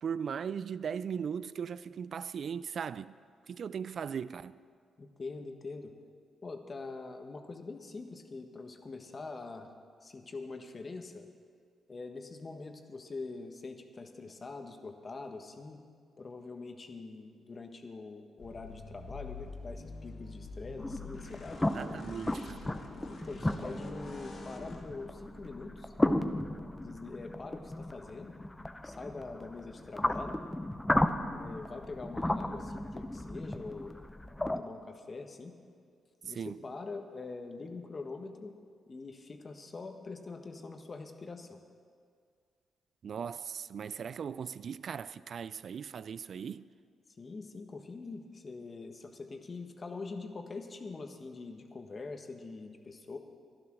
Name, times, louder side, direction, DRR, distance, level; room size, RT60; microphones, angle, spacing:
voice 1, 0.0-3.2 3.5-4.5 21.7-22.7 36.3-36.6 43.0-46.7, right 7 dB, 60° right, 0.4 m, -38 dB
voice 2, 5.0-5.9 6.4-9.7 10.0-11.3 11.9-15.8 16.2-21.7 23.0-25.9 26.8-28.3 28.8-30.4 31.3-33.9 34.6-35.6 36.2-38.5 38.9-41.6 47.2-53.2, left 3 dB, 40° left, 1.4 m, -44 dB
sound 1, 18.4-24.8, left 3 dB, 60° left, 2.1 m, -47 dB
sound 2, 20.8-34.6, left 1 dB, 15° left, 0.8 m, -35 dB
Bass guitar, 23.6-29.9, right 2 dB, 20° right, 2.3 m, -53 dB
12.0 x 11.5 x 6.2 m
supercardioid pair, 55°, 0 cm